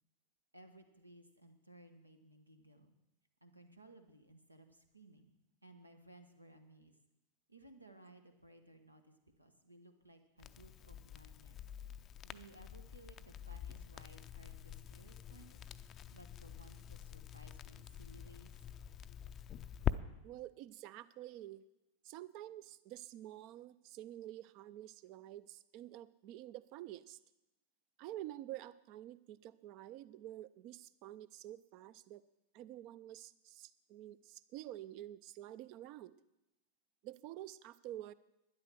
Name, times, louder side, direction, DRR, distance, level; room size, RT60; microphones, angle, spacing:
voice 1, 0.5-2.9 3.4-5.3 5.6-7.0 7.5-11.6 12.2-15.6 16.1-18.5, right 1 dB, 85° right, 7 dB, 1.2 m, -60 dB
Crackle, 10.4-20.0, left 9 dB, 30° left, 0.5 m, -45 dB
voice 2, 20.2-21.7 22.0-27.2 28.0-32.2 32.5-36.2 37.0-38.1, right 14 dB, 40° right, 17 dB, 0.5 m, -49 dB
12.0 x 10.5 x 6.1 m, 0.91 s
figure-of-eight pair, 90°, 0 cm